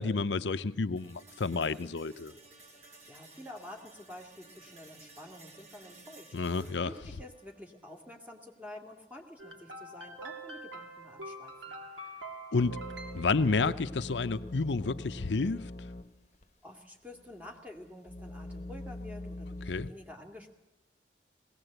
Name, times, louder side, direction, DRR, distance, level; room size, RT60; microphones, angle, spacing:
voice 1, 0.0-2.3 6.3-6.9 12.5-12.8 13.1-15.7 19.7-19.9, left 4 dB, 80° left, 12 dB, 0.6 m, -30 dB
sound 1, 1.0-9.0, right 3 dB, 40° right, 4.7 m, -57 dB
voice 2, 2.7-6.3 6.8-11.7 16.6-20.5, left 1 dB, 10° right, 2 dB, 2.5 m, -49 dB
sound 2, 9.4-14.0, right 2 dB, 85° right, 2.7 m, -45 dB
sound 3, 12.6-16.1 16.4-16.5 17.1-19.9, left 2 dB, 40° left, 1.1 m, -43 dB
20.0 x 17.5 x 8.0 m, 1.0 s
head